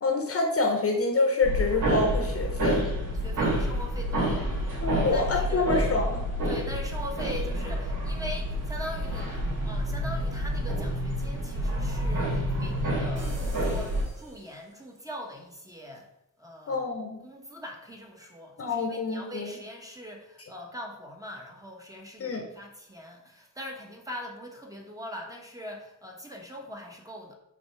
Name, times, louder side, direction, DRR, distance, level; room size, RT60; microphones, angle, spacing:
voice 1, 0.0-2.9 4.8-6.2 16.7-17.2 18.6-19.5 22.2-22.4, left 3 dB, 45° left, 3 dB, 0.9 m, -27 dB
sound 1, 1.4-14.0, equal, 85° right, 2.9 m, -28 dB
voice 2, 3.2-4.6 5.1-5.7 6.5-16.0 16.4-16.8 17.2-27.3, equal, 10° right, 1 dB, 1.0 m, -41 dB
sound 2, 13.2-15.0, right 2 dB, 50° right, 2.0 m, -46 dB
6.1 x 4.3 x 5.6 m, 0.83 s
wide cardioid pair, 180°, 33 cm